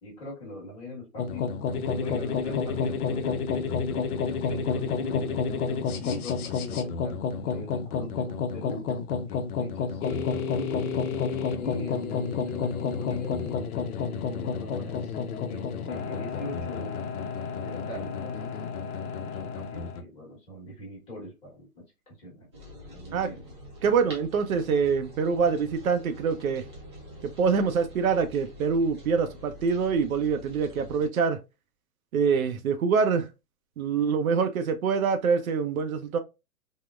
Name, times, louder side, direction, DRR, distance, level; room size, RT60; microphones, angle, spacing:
voice 1, 0.0-1.5 1.9-3.8 4.2-5.4 6.0-8.9 9.3-10.9 11.6-17.0 17.6-18.6 19.3-22.5 22.9-23.4, left 2 dB, 15° left, 1.1 m, -42 dB
sound 1, 1.2-20.0, left 5 dB, 75° left, 0.7 m, -30 dB
sound 2, 22.5-31.1, equal, 20° right, 0.5 m, -46 dB
voice 2, 23.8-26.6 27.2-31.4 32.1-33.3 33.8-36.2, right 5 dB, 65° right, 0.6 m, -25 dB
3.6 x 2.1 x 2.3 m
hypercardioid pair, 155°, 45 cm